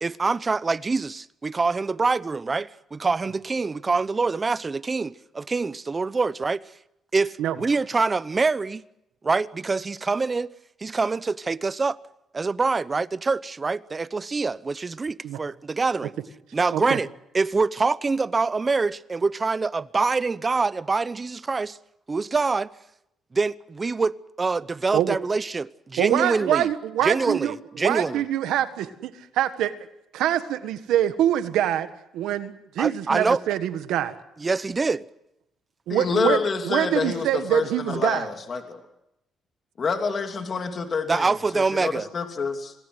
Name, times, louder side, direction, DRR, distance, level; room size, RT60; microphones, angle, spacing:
voice 1, 0.0-6.6 7.1-8.8 9.2-10.5 10.8-12.0 12.3-16.1 16.5-17.1 17.3-21.8 22.1-22.7 23.3-26.7 27.0-28.2 32.8-33.4 34.4-35.0 41.1-42.1, right 4 dB, 30° right, 0.8 m, -25 dB
voice 2, 26.0-27.5 27.8-29.7 30.1-31.9 32.1-34.1 35.9-36.4 36.6-38.3, right 11 dB, 85° right, 1.6 m, -24 dB
voice 3, 35.9-38.8 39.8-42.7, left 5 dB, 45° left, 3.0 m, -27 dB
27.5 x 19.0 x 8.0 m
cardioid pair, 90°, 0 cm